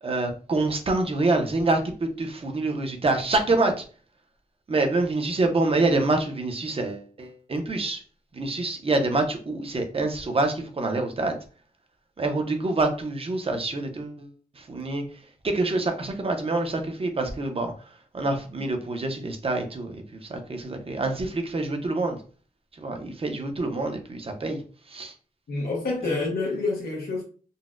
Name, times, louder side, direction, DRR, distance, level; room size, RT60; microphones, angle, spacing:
voice 1, 0.0-3.8 4.7-8.0 8.3-11.4 12.2-14.3 14.6-15.0 15.4-17.7 18.1-22.2 22.8-24.6 24.9-25.1 26.0-26.1, right 2 dB, 35° right, 0.6 m, -26 dB
voice 2, 25.5-27.2, left 3 dB, 85° left, 0.7 m, -27 dB
3.9 x 2.1 x 2.4 m
wide cardioid pair, 130°, 16 cm